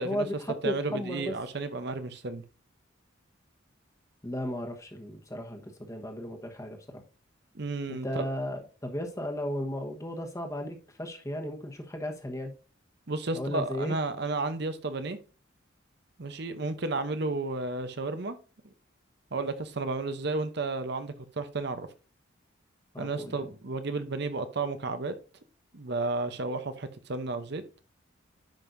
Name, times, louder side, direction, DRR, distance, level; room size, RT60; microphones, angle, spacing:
voice 1, 0.0-1.3 4.2-7.0 7.9-12.5 13.3-13.9 22.9-23.4, left 1 dB, 15° left, 1.2 m, -35 dB
voice 2, 0.6-2.4 7.5-8.2 13.1-15.2 16.2-18.3 19.3-21.9 23.0-25.1 25.7-27.6, right 3 dB, 55° right, 0.8 m, -32 dB
10.5 x 5.4 x 2.6 m
head